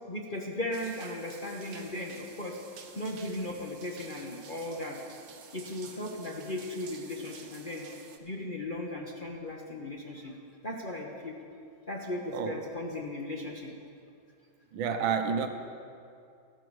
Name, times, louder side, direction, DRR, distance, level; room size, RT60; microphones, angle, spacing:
voice 1, 0.1-2.6 2.9-5.0 5.5-7.9 8.2-10.3 10.6-11.4 11.9-13.7, left 1 dB, 35° left, -1 dB, 0.9 m, -37 dB
sound 1, 0.7-8.2, right 6 dB, 55° right, 1.3 m, -51 dB
voice 2, 14.7-15.5, right 6 dB, 80° right, 7 dB, 1.6 m, -29 dB
14.0 x 12.5 x 4.7 m, 2.5 s
omnidirectional pair, 2.2 m